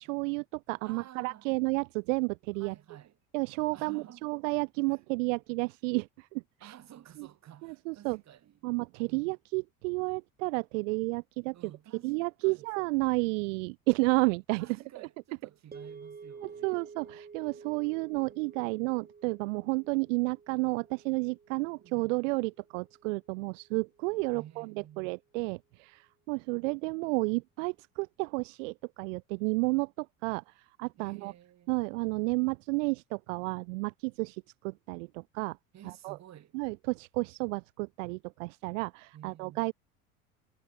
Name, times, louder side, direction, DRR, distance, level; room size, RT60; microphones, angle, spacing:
voice 1, 0.0-2.7 3.3-6.7 7.6-8.2 8.6-11.5 12.0-14.7 16.6-24.7 25.0-31.3 31.7-35.6 36.0-36.2 36.5-39.7, right 28 dB, 60° right, 0.8 m, -31 dB
voice 2, 0.8-1.5 2.5-3.2 3.7-4.3 4.9-5.0 6.6-8.6 9.1-9.3 11.5-12.1 12.4-12.9 14.6-16.9 21.8-22.2 24.3-25.2 31.0-31.7 35.7-36.6 39.1-39.6, right 11 dB, 40° right, 2.9 m, -52 dB
sound 1, 15.7-24.0, right 5 dB, 20° right, 3.7 m, -51 dB
figure-of-eight pair, 70°, 43 cm